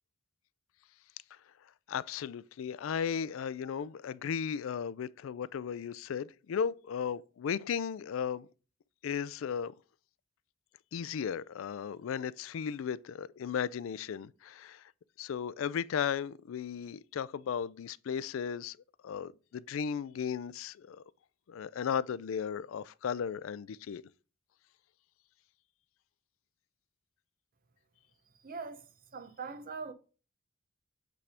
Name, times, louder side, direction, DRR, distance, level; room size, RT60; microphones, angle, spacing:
voice 1, 1.9-8.5 9.0-9.7 10.9-14.8 15.2-18.8 19.0-21.0 21.5-24.0, left 7 dB, 75° left, 0.3 m, -35 dB
voice 2, 28.4-28.8 29.1-29.9, right 4 dB, 45° right, 0.7 m, -41 dB
8.3 x 3.4 x 4.9 m
head